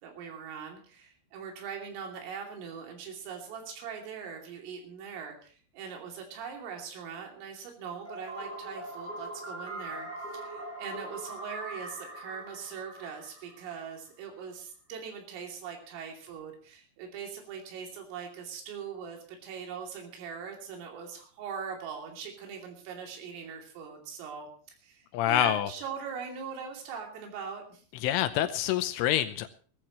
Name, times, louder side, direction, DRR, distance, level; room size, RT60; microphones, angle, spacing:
voice 1, 0.0-24.5 24.8-27.8, right 6 dB, 80° right, 1 dB, 5.4 m, -41 dB
sound 1, 8.0-13.9, right 1 dB, 20° right, 5.4 m, -41 dB
voice 2, 25.1-25.7 28.0-29.5, left 12 dB, 80° left, 10 dB, 3.3 m, -26 dB
21.0 x 14.5 x 3.1 m, 0.42 s
omnidirectional pair, 5.8 m